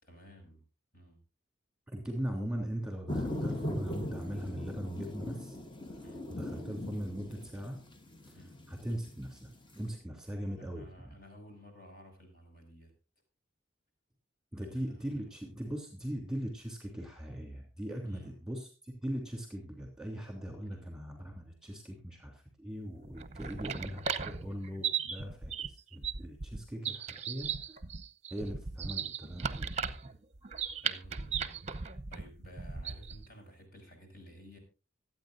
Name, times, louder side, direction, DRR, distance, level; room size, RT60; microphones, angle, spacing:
voice 1, 0.0-0.6 0.9-1.2 6.0-6.3 8.3-8.6 10.6-12.9 14.6-15.3 18.0-18.4 20.6-20.9 30.8-31.6 32.1-34.6, equal, 45° left, 3 dB, 6.3 m, -54 dB
voice 2, 1.9-5.6 6.3-7.8 8.3-8.4 8.7-11.1 14.5-27.8 28.3-30.1, equal, 5° right, 2 dB, 3.0 m, -40 dB
sound 1, 3.1-9.7, left 1 dB, 25° left, 1.2 m, -39 dB
sound 2, 23.0-33.3, right 6 dB, 35° right, 0.8 m, -37 dB
25.5 x 9.1 x 2.6 m, 0.32 s
head